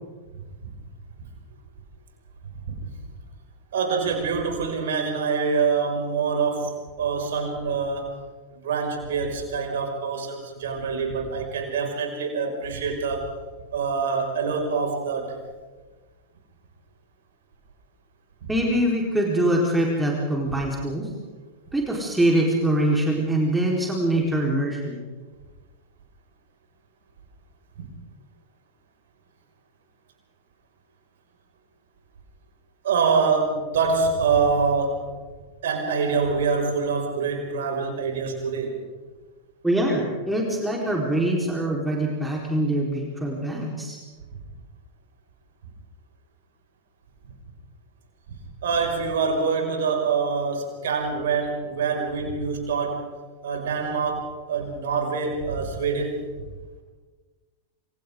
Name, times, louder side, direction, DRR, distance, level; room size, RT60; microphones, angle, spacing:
voice 1, 3.7-8.2 8.6-13.3 13.7-15.4 18.4-18.5 27.8-27.9 32.8-35.1 35.6-38.8 48.6-53.1 53.4-56.2, right 5 dB, 60° right, 2 dB, 5.8 m, -25 dB
voice 2, 18.5-21.1 21.7-25.0 39.6-44.0, right 1 dB, 5° right, -2 dB, 4.2 m, -23 dB
27.5 x 27.0 x 3.8 m, 1.3 s
figure-of-eight pair, 90°, 0 cm